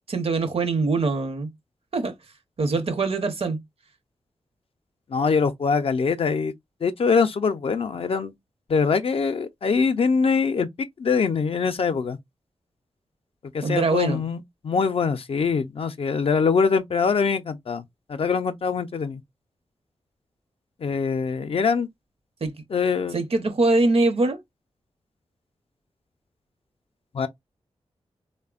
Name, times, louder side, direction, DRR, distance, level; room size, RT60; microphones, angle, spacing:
voice 1, 0.1-1.5 1.9-2.1 2.6-3.6 13.6-14.2 22.4-22.5 23.1-24.4, right 3 dB, 60° right, 0.7 m, -23 dB
voice 2, 5.1-6.5 6.8-8.3 8.7-10.7 11.0-12.2 13.5-17.8 18.1-19.2 20.8-21.9 22.7-23.2 27.1-27.3, left 5 dB, 60° left, 0.4 m, -23 dB
3.3 x 2.1 x 2.3 m
cardioid pair, 50°, 11 cm